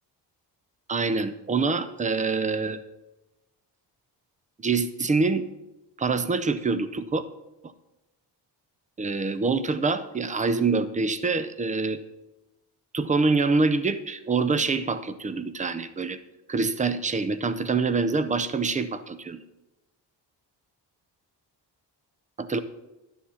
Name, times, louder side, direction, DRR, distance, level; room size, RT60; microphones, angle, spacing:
voice 1, 0.9-2.8 4.6-5.5 6.0-7.2 7.6-7.7 9.0-12.0 12.9-16.2 16.5-19.4 22.4-22.6, right 4 dB, 20° right, 13 dB, 0.5 m, -25 dB
11.0 x 7.1 x 5.7 m, 0.99 s
cardioid pair, 120°, 42 cm